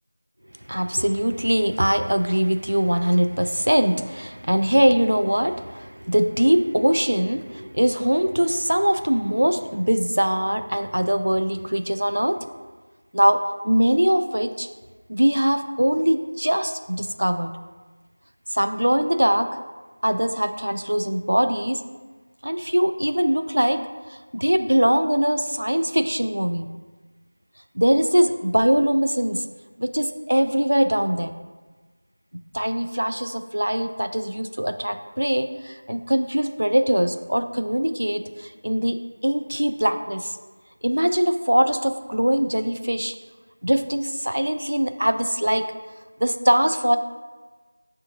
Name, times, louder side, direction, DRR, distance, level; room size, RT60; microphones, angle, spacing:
voice 1, 0.7-12.5 13.1-14.7 15.1-17.5 18.5-19.6 20.0-21.9 22.4-26.7 27.7-29.5 29.8-31.3 32.5-40.3 40.8-43.1 43.6-45.7 46.2-47.0, equal, 90° right, 9 dB, 0.3 m, -22 dB
5.7 x 2.6 x 2.7 m, 1.3 s
figure-of-eight pair, 180°, 0 cm